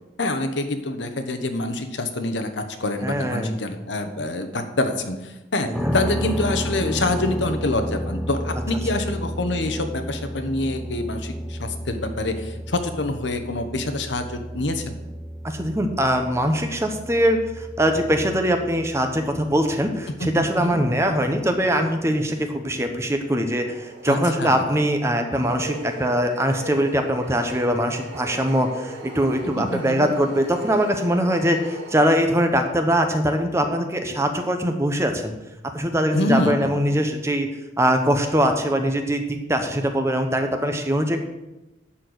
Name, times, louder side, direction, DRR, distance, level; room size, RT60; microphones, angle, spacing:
voice 1, 0.2-14.8 20.2-20.8 24.1-24.8 29.5-30.1 36.1-36.7, left 2 dB, 75° left, 7 dB, 1.1 m, -26 dB
voice 2, 3.0-3.6 5.8-5.9 15.4-35.3 35.7-37.5 37.8-41.2, equal, 15° right, 5 dB, 0.9 m, -22 dB
sound 1, 5.7-21.6, equal, ahead, 0.5 m, -33 dB
sound 2, 23.6-32.7, right 1 dB, 70° right, 2.5 m, -39 dB
11.5 x 4.5 x 7.9 m, 1.0 s
head